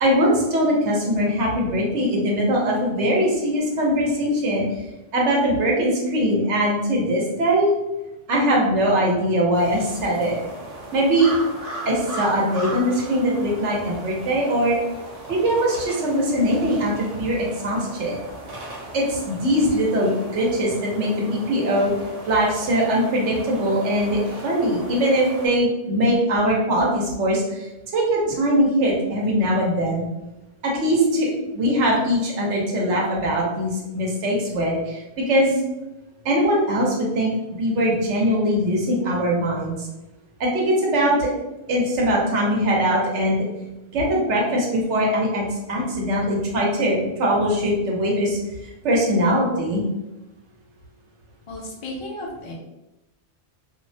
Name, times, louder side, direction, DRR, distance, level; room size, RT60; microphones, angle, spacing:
voice 1, 0.0-4.6 5.1-7.7 8.3-10.4 10.9-11.3 11.9-14.8 15.3-18.2 18.9-21.9 22.3-30.0 30.6-31.3 31.5-35.6 36.2-37.3 37.6-39.7 40.4-41.3 41.7-43.4 43.9-48.4 48.8-49.8, equal, 80° right, -2 dB, 1.0 m, -21 dB
sound 1, 9.5-25.5, right 1 dB, 45° right, 0.5 m, -37 dB
voice 2, 51.5-52.5, left 1 dB, 50° left, -3 dB, 0.3 m, -34 dB
2.4 x 2.0 x 2.6 m, 0.99 s
omnidirectional pair, 1.2 m